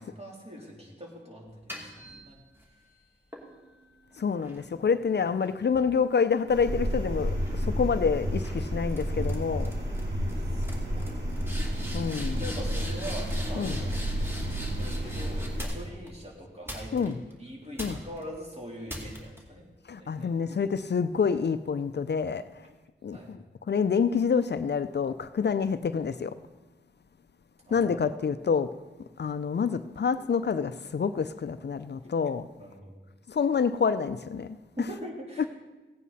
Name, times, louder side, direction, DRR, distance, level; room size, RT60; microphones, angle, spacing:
voice 1, 0.0-2.4 4.8-4.9 10.4-10.7 10.9-11.4 12.4-13.9 14.6-17.1 17.4-19.7 20.0-20.3 23.1-23.3 27.7-27.9 32.6-33.0 34.8-35.5, equal, 35° right, 3.4 m, -43 dB
sound 1, 1.5-2.7 3.3-6.9 7.3-7.7 8.4-8.6 8.9-9.3 9.6-10.0 10.3-10.4 10.6-16.1 16.7-17.3 17.8-18.2 18.9-19.4, equal, 10° right, 2.6 m, -42 dB
voice 2, 4.2-9.8 11.9-12.4 13.5-13.8 16.9-17.2 17.8-18.0 19.9-22.7 23.0-26.4 27.7-28.7 29.2-32.5 33.3-34.6 35.4-35.5, left 6 dB, 60° left, 0.5 m, -27 dB
sound 2, 6.5-15.6, equal, 60° right, 3.6 m, -31 dB
16.0 x 9.3 x 4.1 m
wide cardioid pair, 55°, 19 cm